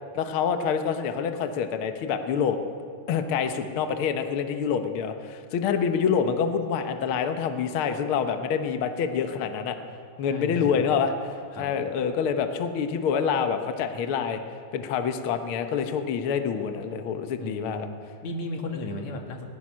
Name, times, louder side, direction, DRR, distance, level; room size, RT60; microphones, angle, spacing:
voice 1, 0.1-2.6 3.1-9.8 10.2-11.1 11.6-14.4 14.7-17.9, left 7 dB, 85° left, 7 dB, 1.2 m, -26 dB
voice 2, 10.3-10.8 11.5-11.7 17.4-19.4, left 2 dB, 55° left, 3 dB, 3.1 m, -35 dB
25.0 x 19.5 x 6.3 m, 2.3 s
omnidirectional pair, 4.1 m